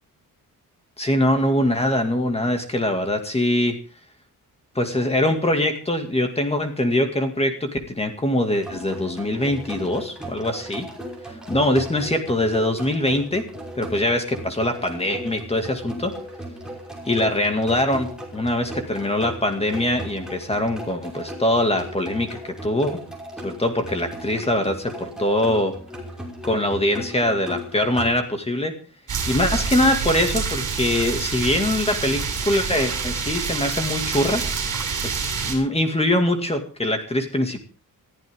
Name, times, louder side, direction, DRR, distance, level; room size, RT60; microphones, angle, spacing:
voice 1, 1.0-3.8 4.8-10.9 11.5-13.5 13.8-16.2 17.0-23.0 23.4-25.8 26.4-28.8 29.3-34.4 35.0-37.7, left 1 dB, 15° left, 5 dB, 2.3 m, -23 dB
sound 1, 8.6-28.1, equal, ahead, 5.6 m, -37 dB
sound 2, 29.1-35.6, right 5 dB, 50° right, 6.7 m, -27 dB
21.5 x 15.0 x 3.7 m, 0.36 s
wide cardioid pair, 160°, 37 cm